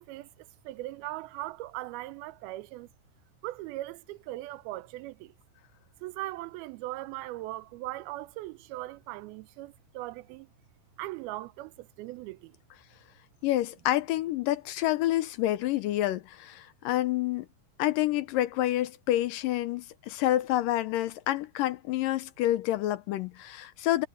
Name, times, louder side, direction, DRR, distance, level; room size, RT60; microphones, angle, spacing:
voice 1, 0.0-2.9 3.4-5.3 6.0-10.5 11.0-12.6, right 17 dB, 90° right, 2.6 m, -39 dB
voice 2, 13.4-17.5 17.8-24.1, left 14 dB, 80° left, 2.2 m, -28 dB
omnidirectional pair, 4.3 m